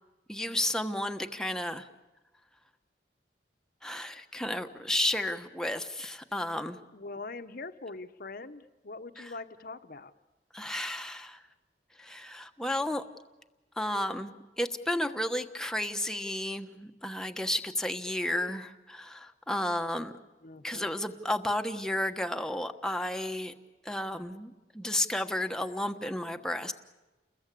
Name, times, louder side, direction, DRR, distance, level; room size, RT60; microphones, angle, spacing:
voice 1, 0.3-1.9 3.8-6.8 9.2-9.3 10.5-11.4 12.0-13.0 13.8-20.1 20.6-23.5 23.8-26.7, left 1 dB, 5° left, 6 dB, 1.2 m, -32 dB
voice 2, 6.9-10.1 20.4-20.9, left 3 dB, 55° left, 10 dB, 1.1 m, -43 dB
30.0 x 21.5 x 8.5 m, 1.1 s
head